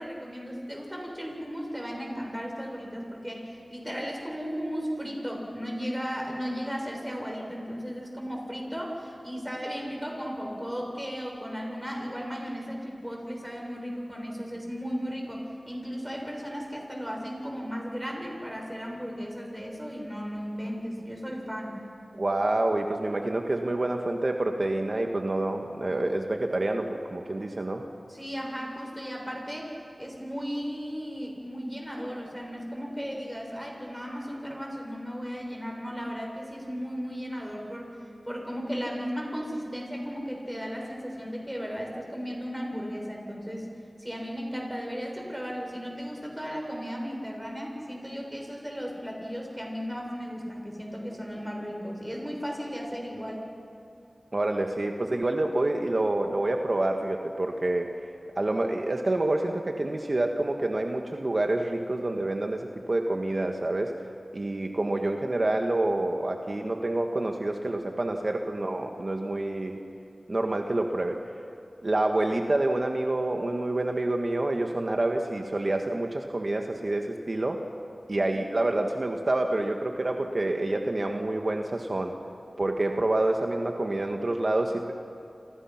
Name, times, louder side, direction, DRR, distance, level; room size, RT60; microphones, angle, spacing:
voice 1, 0.0-21.8 28.1-29.7 30.0-37.9 38.2-43.7 44.0-53.5, equal, 5° right, 0 dB, 7.0 m, -35 dB
voice 2, 22.1-27.8 54.3-57.9 58.3-63.9 64.3-69.8 70.3-71.2 71.8-77.7 78.1-82.1 82.6-84.9, right 2 dB, 50° right, 3 dB, 1.6 m, -27 dB
28.5 x 27.5 x 6.0 m, 2.6 s
wide cardioid pair, 50°, 0 cm